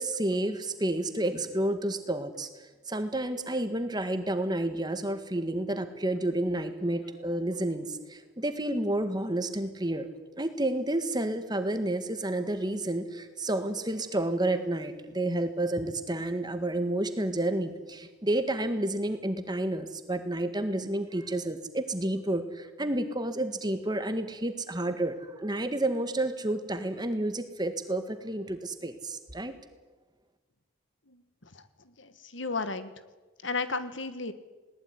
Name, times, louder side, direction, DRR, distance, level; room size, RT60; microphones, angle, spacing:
voice 1, 0.0-2.5 2.9-10.1 10.4-29.5, right 1 dB, 20° right, 9 dB, 1.8 m, -30 dB
voice 2, 31.5-32.9 33.4-34.3, left 3 dB, 70° left, 11 dB, 1.7 m, -34 dB
20.0 x 19.5 x 9.9 m, 1.2 s
head